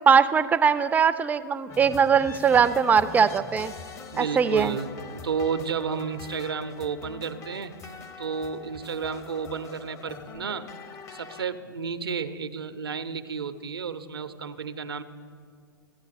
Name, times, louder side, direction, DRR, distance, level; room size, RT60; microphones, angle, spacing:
voice 1, 0.1-3.7 4.2-4.7, right 6 dB, 15° right, 13 dB, 0.3 m, -21 dB
sound 1, 1.7-11.5, left 5 dB, 25° left, 0.6 m, -43 dB
voice 2, 4.1-7.8 8.2-10.7 11.1-15.0, right 6 dB, 80° right, 12 dB, 0.6 m, -32 dB
15.0 x 9.7 x 4.1 m, 2.2 s
figure-of-eight pair, 105°, 12 cm